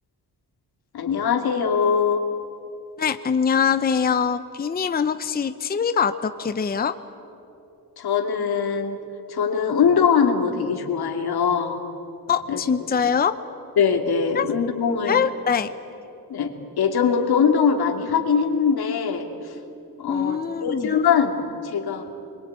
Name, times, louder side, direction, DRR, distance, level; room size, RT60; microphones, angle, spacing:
voice 1, 0.9-2.2 8.0-9.0 9.3-11.8 12.5-12.6 13.8-15.3 16.3-16.5 16.8-19.3 20.0-22.0, left 6 dB, 85° left, 4 dB, 2.7 m, -22 dB
voice 2, 3.0-6.9 12.3-13.4 14.3-14.5 15.1-15.7 20.1-21.0, left 6 dB, 25° left, 10 dB, 0.7 m, -23 dB
26.5 x 22.5 x 9.5 m, 2.7 s
wide cardioid pair, 155°, 37 cm